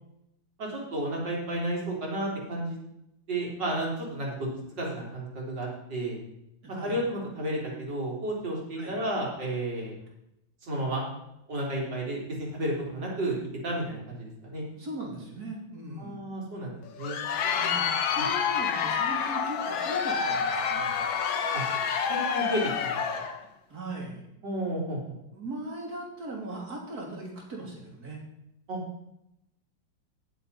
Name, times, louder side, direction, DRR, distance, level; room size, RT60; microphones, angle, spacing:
voice 1, 0.6-2.8 3.3-4.3 4.8-6.2 6.8-9.9 10.6-11.1 11.5-13.4 13.6-14.6 16.0-17.2 18.2-18.3 21.5-21.6 22.1-23.2 24.4-25.2 28.7-28.8, right 1 dB, 65° right, -3 dB, 4.1 m, -32 dB
voice 2, 6.6-7.0 8.8-9.0 14.8-16.2 17.6-21.0 23.7-24.2 25.3-28.2, right 2 dB, 50° right, -1 dB, 3.5 m, -39 dB
Crowd, 16.8-23.4, left 7 dB, 85° left, 1.8 m, -28 dB
18.0 x 7.5 x 4.1 m, 0.82 s
omnidirectional pair, 2.1 m